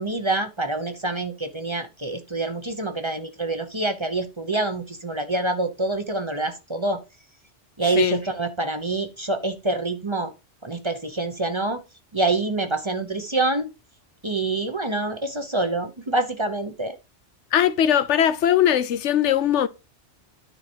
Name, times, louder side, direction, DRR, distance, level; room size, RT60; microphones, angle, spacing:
voice 1, 0.0-7.0 7.8-10.3 10.6-11.8 12.1-13.7 14.2-17.0, right 2 dB, 25° right, 0.9 m, -26 dB
voice 2, 17.5-19.7, left 10 dB, 80° left, 1.0 m, -20 dB
10.0 x 4.8 x 4.5 m
omnidirectional pair, 1.2 m